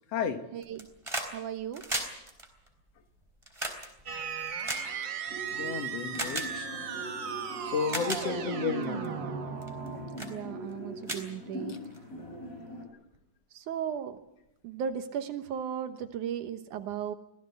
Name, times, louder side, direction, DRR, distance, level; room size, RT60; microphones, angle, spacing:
voice 1, 0.5-0.9 1.3-1.9 10.2-11.8 13.5-14.2 14.6-17.1, right 8 dB, 75° right, 8 dB, 2.6 m, -36 dB
sound 1, 0.6-1.3 1.6-5.5 6.1-6.5 7.3-7.4 7.8-8.2 8.8-9.1 9.6-9.9 10.2-10.3 10.7-10.8 11.0-12.0 13.1-13.2, right 1 dB, 10° right, 3.6 m, -36 dB
sound 2, 4.1-10.6, right 6 dB, 45° right, 1.8 m, -36 dB
sound 3, 5.3-12.8, equal, 25° left, 5.9 m, -42 dB
voice 2, 5.6-6.7 7.7-9.1, left 6 dB, 60° left, 8 dB, 2.4 m, -32 dB
25.0 x 17.0 x 8.2 m, 0.84 s
omnidirectional pair, 3.6 m